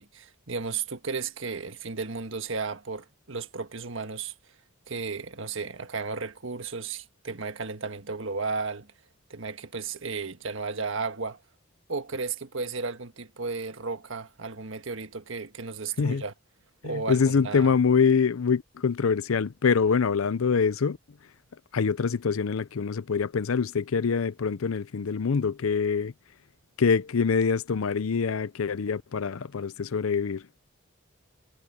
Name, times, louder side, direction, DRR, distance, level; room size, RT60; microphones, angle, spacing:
voice 1, 0.0-4.3 4.9-8.9 9.3-11.4 11.9-16.3 16.8-17.7, right 4 dB, 70° right, 1.6 m, -34 dB
voice 2, 16.8-21.0 21.7-26.1 26.8-30.6, left 5 dB, 90° left, 0.6 m, -25 dB
head